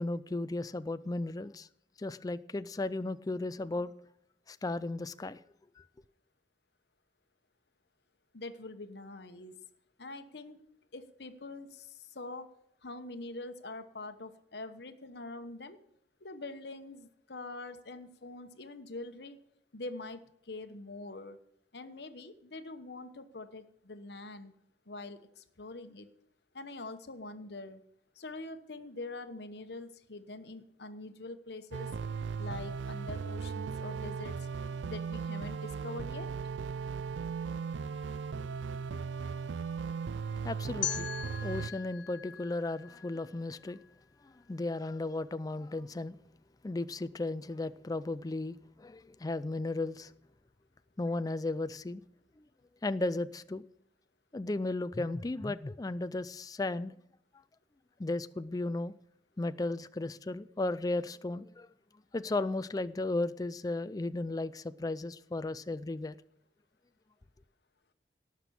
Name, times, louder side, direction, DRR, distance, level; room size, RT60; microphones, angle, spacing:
voice 1, 0.0-1.7 2.0-3.9 4.5-5.4 5.8-5.9 40.4-43.8 44.2-46.2 46.6-50.1 51.0-52.0 52.4-52.5 52.8-53.6 54.3-56.9 58.0-58.9 59.4-61.7 62.1-66.2, left 2 dB, 20° left, 0.4 m, -35 dB
voice 2, 8.3-9.6 10.0-10.6 10.9-12.5 12.8-15.8 16.2-19.4 19.7-21.4 21.7-24.5 24.9-26.1 26.5-27.8 28.2-31.9 32.4-34.5 34.8-36.3, left 2 dB, 65° left, 1.1 m, -44 dB
sound 1, 31.7-41.7, right 5 dB, 85° right, 0.4 m, -37 dB
sound 2, 40.8-43.8, left 10 dB, 80° left, 0.6 m, -40 dB
18.0 x 6.0 x 7.0 m
head